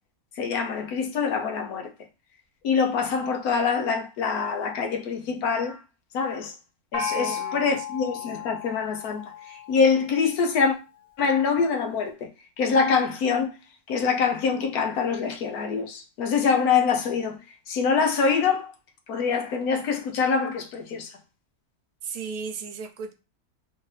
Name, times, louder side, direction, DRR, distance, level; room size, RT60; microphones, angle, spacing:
voice 1, 0.4-1.9 2.6-5.8 6.1-6.5 6.9-10.7 11.2-12.3 12.6-13.5 13.9-17.4 17.7-18.7 19.1-21.1, left 5 dB, 85° left, 1.2 m, -25 dB
Gong, 6.9-10.4, left 7 dB, 35° left, 1.5 m, -34 dB
voice 2, 7.1-7.9 22.0-23.1, right 5 dB, 80° right, 1.1 m, -36 dB
3.7 x 2.7 x 3.2 m
omnidirectional pair, 1.5 m